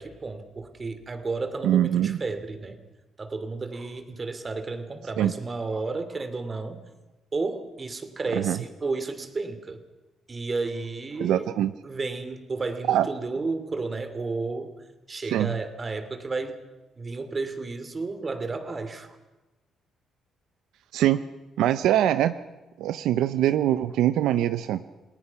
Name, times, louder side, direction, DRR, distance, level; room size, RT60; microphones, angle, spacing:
voice 1, 0.0-2.8 3.2-6.8 7.3-9.8 10.3-11.5 11.8-14.7 15.1-16.6 17.0-19.2, right 3 dB, 30° right, 9 dB, 2.8 m, -32 dB
voice 2, 1.6-2.2 5.2-5.3 8.3-8.6 11.2-11.7 12.9-13.1 15.3-15.5 20.9-21.2 21.6-22.3 22.8-24.8, right 12 dB, 85° right, 12 dB, 0.7 m, -23 dB
29.5 x 19.0 x 5.9 m, 1.1 s
cardioid pair, 90°, 0 cm